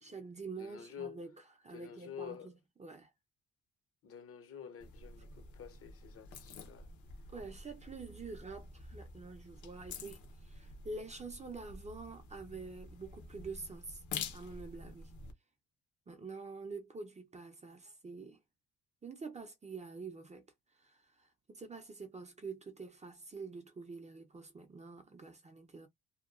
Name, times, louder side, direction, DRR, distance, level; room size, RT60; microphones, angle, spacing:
voice 1, 0.0-1.3 1.6-3.1 7.3-14.0 14.3-15.1 16.1-18.4 19.0-20.4 20.7-25.9, right 4 dB, 25° right, 0.5 m, -47 dB
voice 2, 0.6-1.2 1.7-2.5 4.0-6.9, left 8 dB, 50° left, 0.7 m, -48 dB
sound 1, 4.8-15.3, left 5 dB, 75° left, 0.9 m, -48 dB
2.7 x 2.2 x 2.4 m
cardioid pair, 90°, 30 cm